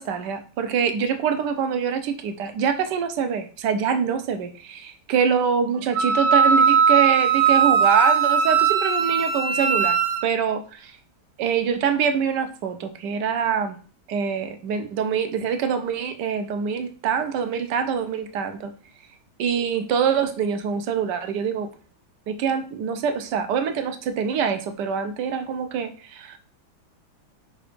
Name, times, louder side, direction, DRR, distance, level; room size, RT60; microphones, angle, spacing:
voice 1, 0.0-10.0 10.2-10.9 11.4-13.8 14.1-18.7 19.4-21.7 22.3-26.4, right 7 dB, 65° right, 8 dB, 1.3 m, -25 dB
Wind instrument woodwind instrument, 6.0-10.2, right 6 dB, 80° right, 1.6 m, -19 dB
5.2 x 4.0 x 5.0 m, 0.40 s
omnidirectional pair, 2.2 m